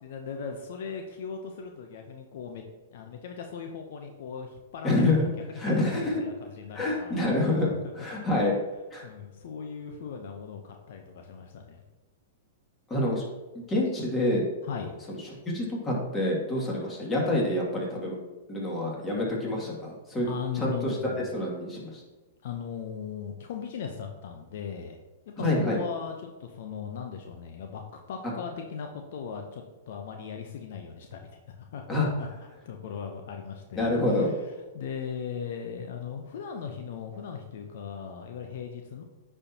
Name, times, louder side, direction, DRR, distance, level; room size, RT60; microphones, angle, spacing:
voice 1, 0.0-2.6 2.9-7.8 9.0-11.8 14.6-14.9 20.2-21.3 22.4-25.0 25.3-31.8 32.2-32.3 32.7-39.0, left 7 dB, 65° left, 4 dB, 0.7 m, -38 dB
voice 2, 4.8-5.3 5.6-6.1 6.7-7.7 7.9-8.5 8.9-9.0 12.9-13.2 13.5-14.4 15.1-15.2 15.5-18.1 18.5-20.3 20.5-22.0 25.4-25.8 31.9-32.1 33.8-34.3, left 1 dB, 20° left, -3 dB, 2.3 m, -27 dB
9.7 x 4.5 x 2.9 m, 1.2 s
hypercardioid pair, 120°, 0 cm